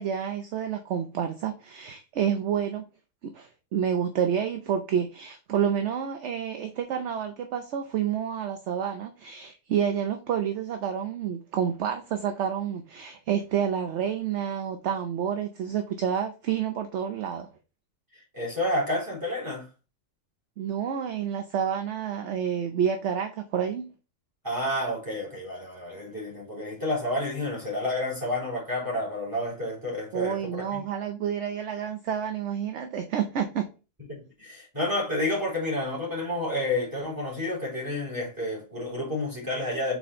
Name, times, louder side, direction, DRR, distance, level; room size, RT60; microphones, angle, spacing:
voice 1, 0.0-2.8 3.2-17.5 20.6-23.9 30.1-33.7, right 8 dB, 60° right, 0.9 m, -29 dB
voice 2, 18.3-19.7 24.4-30.8 34.1-40.0, left 1 dB, 15° right, 3.5 m, -30 dB
5.7 x 4.2 x 4.2 m
omnidirectional pair, 1.4 m